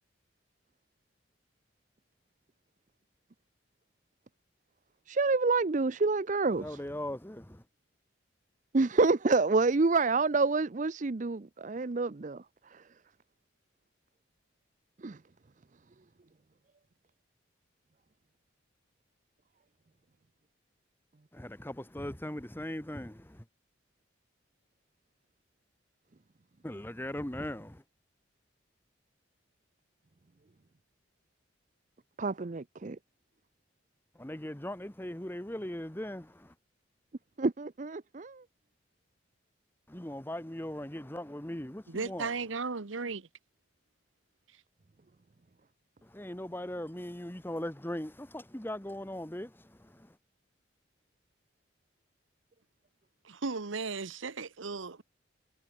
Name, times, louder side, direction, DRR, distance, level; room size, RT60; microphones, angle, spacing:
voice 1, 5.1-6.8 8.7-12.4 12.7-12.8 15.0-15.2 32.2-33.0 37.4-38.4, right 3 dB, 40° right, 0.5 m, -28 dB
voice 2, 6.5-7.6 21.3-23.4 26.6-27.8 34.2-36.5 39.9-42.3 46.0-50.2, left 1 dB, 10° left, 1.2 m, -39 dB
voice 3, 41.9-43.3 53.2-55.0, right 4 dB, 85° right, 1.1 m, -36 dB
head